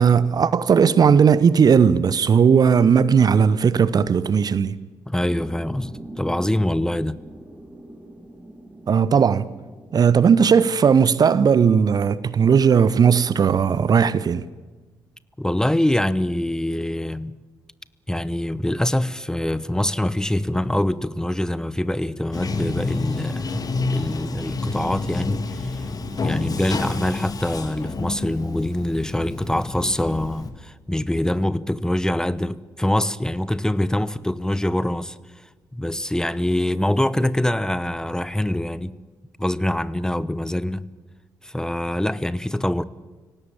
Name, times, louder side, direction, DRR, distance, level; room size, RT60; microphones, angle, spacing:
voice 1, 0.0-4.8 8.9-9.5 9.9-14.4, right 6 dB, 45° right, 0.8 m, -17 dB
voice 2, 5.1-7.2 15.4-17.3 18.1-23.6 23.9-25.8 26.1-35.2 35.7-38.9 39.4-40.8 41.4-42.8, left 1 dB, 5° left, 0.9 m, -24 dB
sound 1, 5.2-10.9, right 1 dB, 10° right, 3.4 m, -42 dB
Bathtub (filling or washing), 22.3-30.5, left 3 dB, 40° left, 2.4 m, -29 dB
26.0 x 17.5 x 8.7 m
figure-of-eight pair, 40°, 10 cm